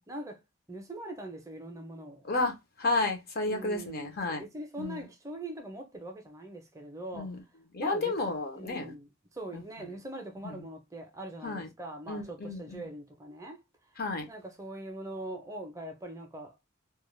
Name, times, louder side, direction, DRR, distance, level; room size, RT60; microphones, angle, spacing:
voice 1, 0.1-0.4 0.7-2.3 3.4-7.4 7.8-8.1 8.6-13.6 14.3-16.5, right 1 dB, 15° right, 0.5 m, -42 dB
voice 2, 2.3-4.4 4.8-5.0 7.1-7.4 7.7-8.9 9.5-9.6 10.4-10.5 11.4-11.7 12.1-12.8 14.0-14.3, left 2 dB, 45° left, 0.6 m, -32 dB
2.3 x 2.1 x 3.1 m
head